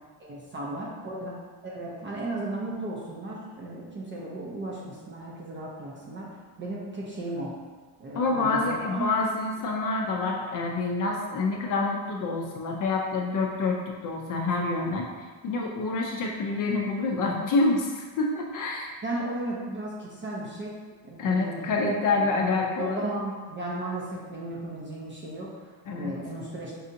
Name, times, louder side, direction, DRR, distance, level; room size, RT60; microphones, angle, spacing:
voice 1, 0.2-6.3 6.6-7.5 8.0-9.1 19.0-20.7 21.0-21.9 22.1-26.8, right 2 dB, 25° right, -4 dB, 0.4 m, -35 dB
voice 2, 8.1-18.9 21.2-23.0 25.9-26.1, left 3 dB, 45° left, 0 dB, 0.4 m, -27 dB
5.3 x 2.7 x 2.5 m, 1.4 s
cardioid pair, 155°, 49 cm